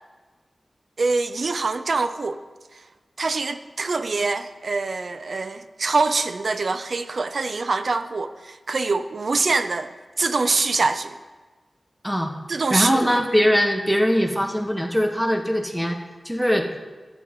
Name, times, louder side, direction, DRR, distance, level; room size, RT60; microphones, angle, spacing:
voice 1, 1.0-2.4 2.7-2.8 3.2-9.9 10.2-11.2 12.5-13.0, right 3 dB, 65° right, 10 dB, 0.4 m, -24 dB
voice 2, 12.7-16.0 16.2-16.7, equal, ahead, 3 dB, 1.1 m, -21 dB
12.0 x 9.0 x 3.7 m, 1.3 s
wide cardioid pair, 85°, 0 cm